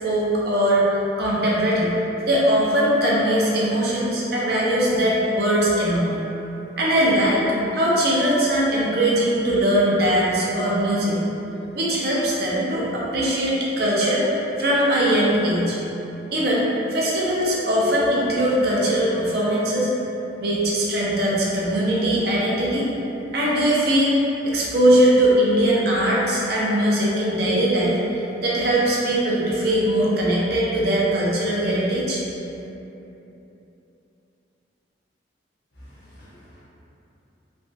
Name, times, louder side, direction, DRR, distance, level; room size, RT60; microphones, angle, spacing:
voice 1, 0.0-2.0 2.3-6.1 6.8-7.4 7.7-11.2 11.7-15.8 16.3-19.9 20.4-22.9 23.3-32.2, right 1 dB, 55° right, -6 dB, 0.5 m, -21 dB
voice 2, 35.7-36.7, equal, 60° left, -9 dB, 0.8 m, -48 dB
3.2 x 2.3 x 2.5 m, 3.0 s
head